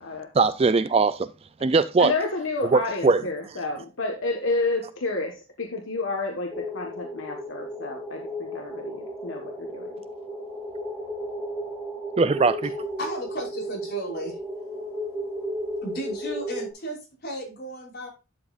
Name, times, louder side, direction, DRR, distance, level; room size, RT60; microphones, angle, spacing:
voice 1, 0.3-1.3 1.6-2.1 2.7-3.2 12.2-12.7, right 4 dB, 30° right, 0.3 m, -20 dB
voice 2, 2.0-10.0, left 3 dB, 75° left, 1.5 m, -30 dB
sound 1, 6.5-16.7, equal, 5° right, 2.4 m, -34 dB
voice 3, 13.0-14.4 15.8-18.1, right 1 dB, 50° left, 5.1 m, -34 dB
11.5 x 7.3 x 2.5 m
head